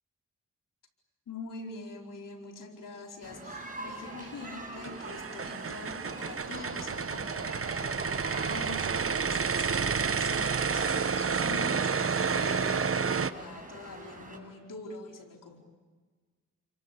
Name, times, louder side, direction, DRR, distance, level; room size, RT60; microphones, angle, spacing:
voice 1, 1.3-15.6, left 3 dB, 75° left, 2 dB, 4.7 m, -44 dB
sound 1, 3.2-14.4, right 2 dB, 25° right, 7.8 m, -44 dB
sound 2, 4.6-13.3, right 6 dB, 45° right, 1.1 m, -30 dB
29.0 x 23.5 x 8.4 m, 1.4 s
cardioid pair, 50°, 32 cm